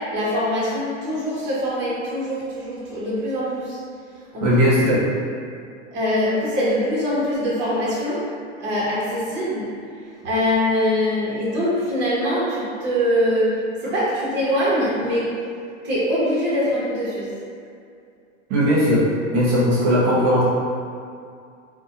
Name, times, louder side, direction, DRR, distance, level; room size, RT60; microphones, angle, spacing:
voice 1, 0.0-3.8 4.3-4.6 5.9-8.2 8.6-9.7 10.2-15.3 15.8-17.3, equal, 30° right, -9 dB, 0.8 m, -23 dB
voice 2, 4.4-5.1 18.5-20.4, equal, 55° right, -7 dB, 0.9 m, -18 dB
2.6 x 2.2 x 2.7 m, 2.3 s
supercardioid pair, 130°, 38 cm